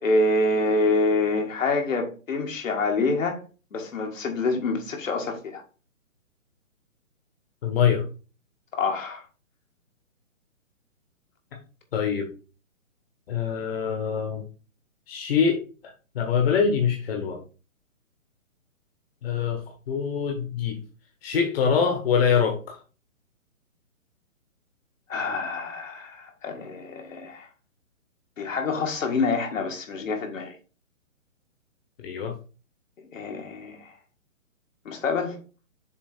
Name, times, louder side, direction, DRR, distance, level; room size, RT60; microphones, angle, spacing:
voice 1, 0.0-3.4 3.7-5.6 8.7-9.2 25.1-27.5 28.4-30.6 33.1-33.9 34.9-35.4, left 3 dB, 70° left, 1.9 m, -26 dB
voice 2, 7.6-8.0 11.9-12.3 13.3-14.4 15.1-15.6 16.1-17.4 19.2-19.6 19.9-20.8 21.2-22.8 32.0-32.3, left 7 dB, 45° left, 1.3 m, -24 dB
7.1 x 3.1 x 4.4 m
hypercardioid pair, 150°, 40 cm